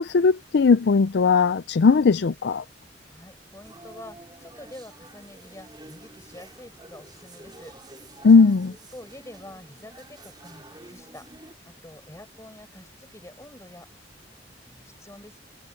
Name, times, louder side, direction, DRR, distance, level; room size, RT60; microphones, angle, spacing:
voice 1, 0.0-2.6 8.2-8.7, left 4 dB, 65° left, 0.4 m, -18 dB
voice 2, 3.0-7.8 8.9-11.3 11.6-13.9 14.6-15.4, left 1 dB, 15° left, 6.3 m, -46 dB
sound 1, 3.6-11.5, right 2 dB, 25° right, 4.4 m, -49 dB
head